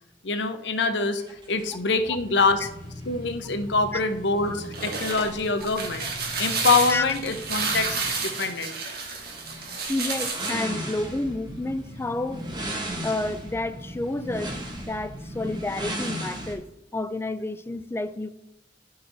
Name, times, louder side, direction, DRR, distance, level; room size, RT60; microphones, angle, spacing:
voice 1, 0.2-1.2 1.5-2.7 3.1-6.1 6.4-8.0 8.2-8.7, left 3 dB, 85° left, 0.7 m, -25 dB
sound 1, 1.2-16.6, right 1 dB, 25° right, 1.2 m, -37 dB
sound 2, 4.5-10.6, right 4 dB, 60° right, 1.5 m, -30 dB
voice 2, 9.9-12.4 13.0-14.6 14.9-16.7 16.9-18.3, left 2 dB, 15° left, 0.3 m, -30 dB
11.0 x 4.0 x 4.0 m
head